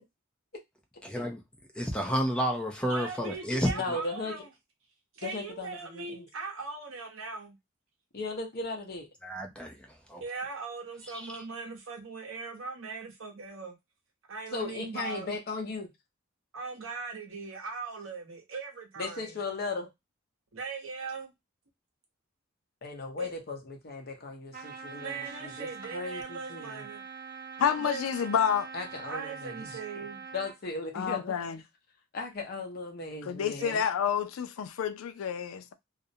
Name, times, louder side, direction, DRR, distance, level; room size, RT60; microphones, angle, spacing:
voice 1, 1.0-1.4 1.8-4.0 9.2-10.2 11.1-11.2, equal, 5° left, 0.5 m, -31 dB
voice 2, 2.8-4.5 5.1-7.5 10.2-13.8 14.3-15.3 16.5-19.4 20.5-21.3 23.2-23.3 25.0-27.0 27.6-28.0 29.0-30.2 33.6-33.8, right 4 dB, 75° right, 0.8 m, -39 dB
voice 3, 3.7-4.4 5.2-6.2 8.1-9.1 14.5-15.9 19.0-19.9 22.8-26.8 28.7-29.7 30.0-30.1 30.3-31.4 32.1-33.8, left 3 dB, 50° left, 0.7 m, -37 dB
Trumpet, 24.5-30.6, right 6 dB, 40° right, 0.8 m, -44 dB
voice 4, 27.6-28.7 30.9-31.6 33.2-35.7, left 8 dB, 85° left, 0.4 m, -29 dB
2.4 x 2.0 x 2.6 m
head